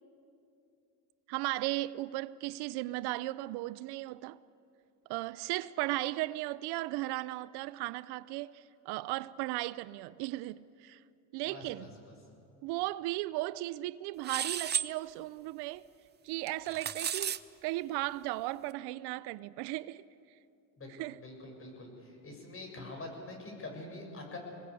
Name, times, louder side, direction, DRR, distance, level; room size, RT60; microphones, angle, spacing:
voice 1, 1.3-4.4 5.1-11.0 11.3-11.9 12.6-15.9 16.2-20.0 20.9-21.2, right 18 dB, 70° right, 0.6 m, -36 dB
voice 2, 11.5-11.9 20.8-20.9 21.2-24.4, left 2 dB, 30° left, 7.1 m, -45 dB
sound 1, 14.2-14.9 16.5-17.4, right 8 dB, 25° right, 0.6 m, -33 dB
24.0 x 20.0 x 8.4 m
supercardioid pair, 100°, 41 cm